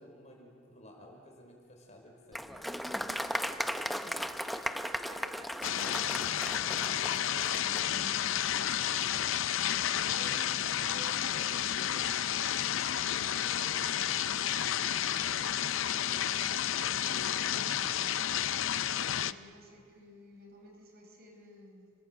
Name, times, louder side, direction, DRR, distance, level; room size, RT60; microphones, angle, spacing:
voice 1, 0.0-3.0 17.5-17.9, equal, 35° left, 1 dB, 5.0 m, -54 dB
Applause, 2.3-7.9, equal, ahead, 0.8 m, -36 dB
voice 2, 3.1-9.1 9.9-18.5 19.2-21.9, equal, 50° right, 2 dB, 4.9 m, -55 dB
sound 1, 5.6-19.3, left 10 dB, 65° left, 0.6 m, -31 dB
29.5 x 20.5 x 7.7 m, 2.3 s
head